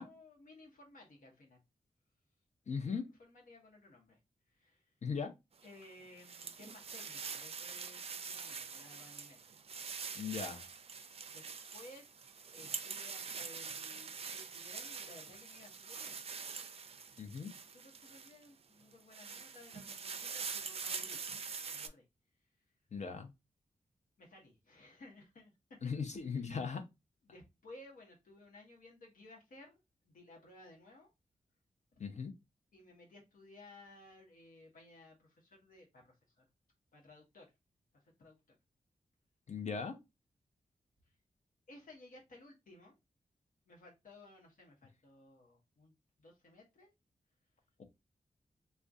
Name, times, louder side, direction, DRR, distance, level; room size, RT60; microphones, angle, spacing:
voice 1, 0.0-1.6 2.9-4.2 4.5-4.9 5.6-9.5 11.3-11.4 11.7-12.1 12.3-16.2 17.7-21.2 21.7-22.0 24.2-25.8 26.1-26.6 27.2-31.1 31.9-32.0 32.7-36.5 36.9-37.5 38.0-38.4 41.7-42.9 43.7-46.9, left 2 dB, 75° left, 1.0 m, -58 dB
voice 2, 2.7-3.1 5.0-5.3 10.1-10.7 17.2-17.5 22.9-23.3 25.8-26.8 32.0-32.3 39.5-39.9, left 5 dB, 55° left, 0.7 m, -38 dB
sound 1, 5.6-18.5 18.9-21.9, right 5 dB, 45° right, 0.4 m, -45 dB
2.5 x 2.2 x 3.4 m
cardioid pair, 50°, 14 cm